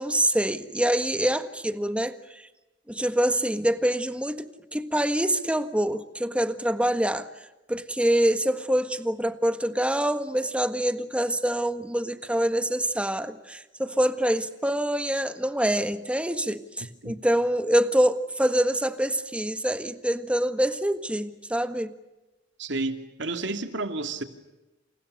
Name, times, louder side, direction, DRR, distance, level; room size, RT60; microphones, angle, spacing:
voice 1, 0.0-2.5 2.9-7.3 7.7-21.9, right 1 dB, 5° right, 1.5 m, -25 dB
voice 2, 22.6-24.2, right 3 dB, 75° right, 2.6 m, -31 dB
29.0 x 29.0 x 6.6 m
head